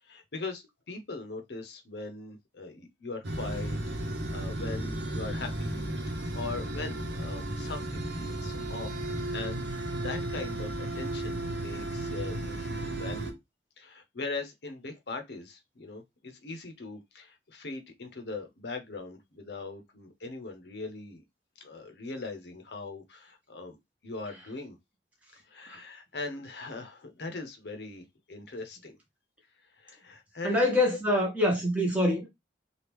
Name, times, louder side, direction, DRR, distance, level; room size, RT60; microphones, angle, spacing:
voice 1, 0.0-3.8 4.3-9.0 9.3-13.4 13.8-21.2 21.6-23.8 24.0-24.8 25.3-29.0 29.8-30.6, left 3 dB, 75° left, 0.7 m, -40 dB
sound 1, 3.2-13.3, right 1 dB, 85° right, 0.8 m, -34 dB
voice 2, 30.4-32.3, left 1 dB, 10° right, 1.0 m, -25 dB
3.0 x 2.4 x 3.4 m
head